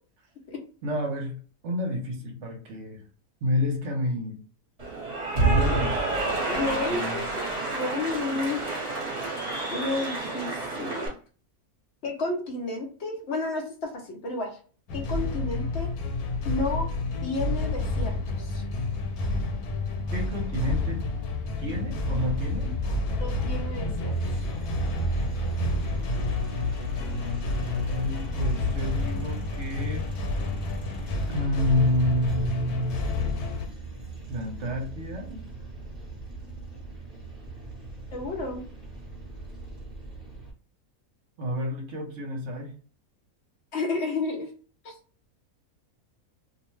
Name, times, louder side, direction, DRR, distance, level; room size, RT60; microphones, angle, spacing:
voice 1, 0.8-1.3 1.6-3.0 3.4-4.4 5.3-6.0 6.5-7.2 20.1-21.0 21.6-22.7 26.9-30.1 31.3-33.0 34.3-35.4 41.4-42.7, left 1 dB, 60° right, 1 dB, 1.0 m, -29 dB
Cheering / Applause, 4.8-11.1, right 2 dB, 30° right, 1.0 m, -28 dB
voice 2, 6.4-7.4 7.7-8.6 9.7-11.1 12.0-14.6 14.9-15.9 16.4-16.9 17.2-18.6 23.2-24.1 38.1-38.6 43.7-44.5 44.8-44.9, left 3 dB, 60° left, 1 dB, 0.8 m, -31 dB
sound 1, 14.9-33.7, left 2 dB, 85° left, 1.1 m, -29 dB
sound 2, 22.0-40.5, right 2 dB, 5° right, 0.8 m, -40 dB
2.6 x 2.1 x 3.1 m, 0.40 s
omnidirectional pair, 1.5 m